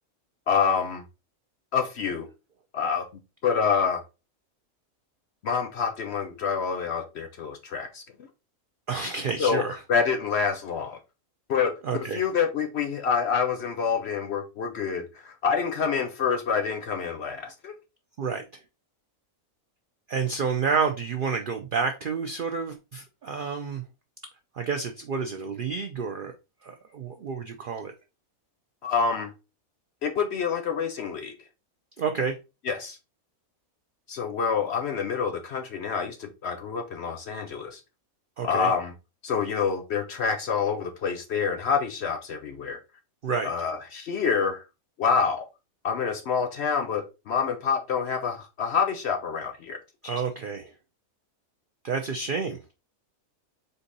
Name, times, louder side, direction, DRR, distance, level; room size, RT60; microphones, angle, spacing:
voice 1, 0.5-1.0 1.7-2.3 2.7-3.1 3.4-4.0 5.4-8.0 9.4-9.6 9.9-11.0 11.5-17.7 28.8-29.3 30.0-31.3 32.7-33.0 34.1-37.8 38.4-38.9 39.2-42.8 43.4-44.6 45.0-45.5 45.8-49.8, left 6 dB, 60° left, 0.7 m, -27 dB
voice 2, 8.9-9.8 11.8-12.2 18.2-18.4 20.1-23.8 24.5-26.3 26.6-27.9 32.0-32.3 38.4-38.7 43.2-43.5 50.0-50.7 51.8-52.6, right 5 dB, 70° right, 0.5 m, -29 dB
4.5 x 2.7 x 3.9 m
omnidirectional pair, 1.5 m